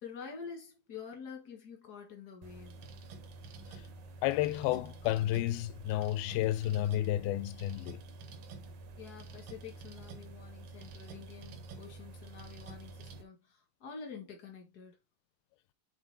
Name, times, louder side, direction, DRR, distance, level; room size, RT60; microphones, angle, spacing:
voice 1, 0.0-2.9 9.0-14.9, left 6 dB, 55° left, 1.0 m, -48 dB
sound 1, 2.4-13.2, right 3 dB, 65° right, 2.7 m, -48 dB
voice 2, 4.2-8.0, left 14 dB, 85° left, 2.3 m, -31 dB
8.1 x 3.9 x 4.0 m
omnidirectional pair, 4.4 m